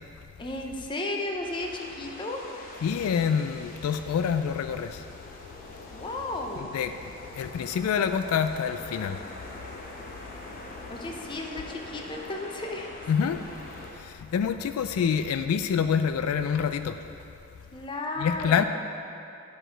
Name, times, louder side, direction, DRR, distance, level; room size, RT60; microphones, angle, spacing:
voice 1, 0.4-2.4 5.9-6.7 10.9-12.9 14.9-15.0 17.7-18.6, left 2 dB, 20° left, 1 dB, 0.5 m, -34 dB
sound 1, 1.4-13.9, left 2 dB, 40° left, 0.9 m, -44 dB
voice 2, 2.8-5.0 6.7-6.9 7.4-9.2 13.1-13.4 14.1-16.9 18.2-18.6, left 7 dB, 85° left, 9 dB, 0.3 m, -26 dB
10.0 x 4.4 x 4.5 m, 2.6 s
head